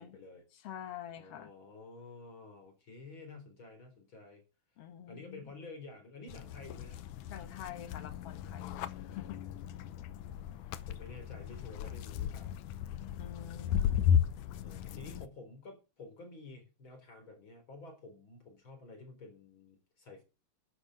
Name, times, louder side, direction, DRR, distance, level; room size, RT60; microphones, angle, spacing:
voice 1, 0.0-0.4 1.2-4.4 5.1-7.1 10.2-12.5 14.6-20.2, left 3 dB, 40° left, 4.7 m, -51 dB
voice 2, 0.5-1.5 4.8-5.4 7.3-9.4 13.2-14.2, left 10 dB, 60° left, 2.0 m, -47 dB
sound 1, 6.3-15.3, left 9 dB, 85° left, 2.3 m, -35 dB
11.5 x 9.5 x 6.3 m
omnidirectional pair, 3.4 m